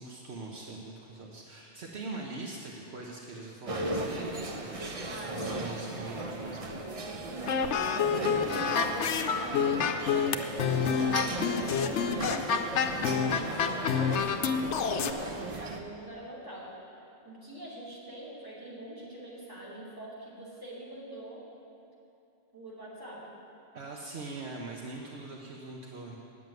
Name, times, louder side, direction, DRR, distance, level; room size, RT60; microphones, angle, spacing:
voice 1, 0.0-4.8 5.0-6.6 23.7-26.2, right 3 dB, 65° right, -1 dB, 1.2 m, -42 dB
sound 1, 3.7-15.8, right 2 dB, 35° right, 0.8 m, -37 dB
sound 2, 7.5-15.1, left 6 dB, 75° left, 1.0 m, -28 dB
voice 2, 7.8-12.5 13.2-21.4 22.5-23.4, right 1 dB, 20° right, -7 dB, 2.9 m, -45 dB
9.9 x 7.6 x 9.2 m, 2.6 s
omnidirectional pair, 1.2 m